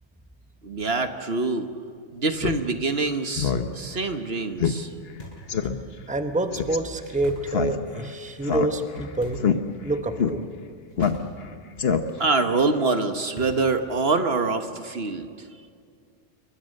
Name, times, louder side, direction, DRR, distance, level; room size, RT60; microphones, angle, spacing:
voice 1, 0.6-1.7 2.1-4.9 12.2-15.5, right 3 dB, 55° right, 7 dB, 1.5 m, -25 dB
Speech synthesizer, 2.4-2.6 3.0-3.1 3.4-3.7 4.0-4.1 4.6-4.8 5.1-5.2 5.5-5.8 6.5-6.8 7.5-8.1 8.4-9.0 9.4-9.6 10.2-10.3 11.0-11.5 11.8-12.3, left 7 dB, 55° left, 1.3 m, -24 dB
sound 1, 5.2-5.6 7.2-7.6 9.2-9.6 11.0-11.4 11.7-11.8 13.4-13.8, right 1 dB, 35° left, 7.4 m, -42 dB
voice 2, 6.1-9.4 9.8-10.4, right 2 dB, 5° right, 7 dB, 1.1 m, -27 dB
28.5 x 23.0 x 6.6 m, 2.2 s
omnidirectional pair, 1.2 m